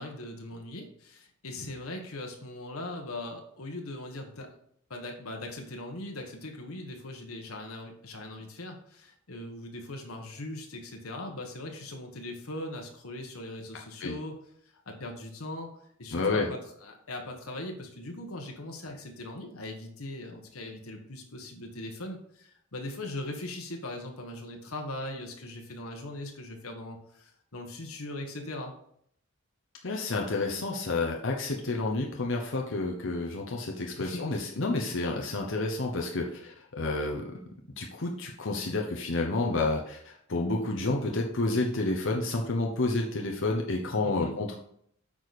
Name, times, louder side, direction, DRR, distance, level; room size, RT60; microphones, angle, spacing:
voice 1, 0.0-4.5 4.9-14.4 14.9-28.7 34.0-34.4 44.0-44.3, left 1 dB, 85° left, 2 dB, 1.4 m, -40 dB
voice 2, 16.1-16.5 29.8-37.4 37.8-44.6, left 2 dB, 60° left, 0 dB, 1.0 m, -30 dB
8.8 x 5.0 x 4.2 m, 0.67 s
head